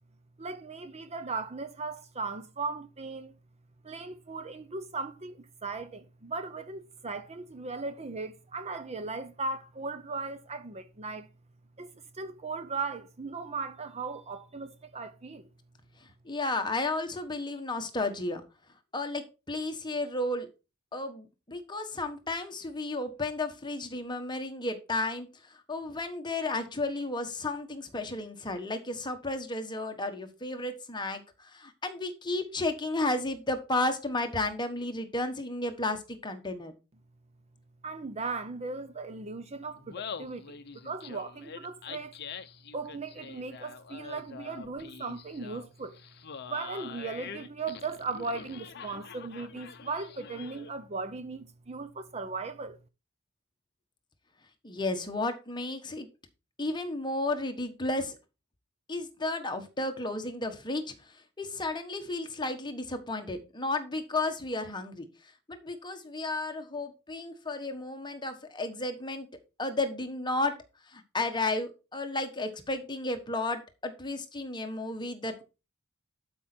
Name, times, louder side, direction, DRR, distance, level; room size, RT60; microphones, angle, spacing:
voice 1, 0.4-3.3 3.8-11.3 11.8-15.4 37.8-42.1 42.7-46.0 46.5-52.8, right 4 dB, 30° right, 0.7 m, -37 dB
voice 2, 16.2-18.4 18.9-20.5 20.9-25.3 25.7-36.7 54.6-56.1 56.6-58.1 58.9-60.9 61.4-65.0 65.5-69.3 69.6-70.5 70.9-75.4, left 2 dB, 20° left, 1.3 m, -33 dB
Laughter, 39.8-50.8, left 6 dB, 50° left, 0.7 m, -45 dB
12.0 x 5.3 x 4.4 m
head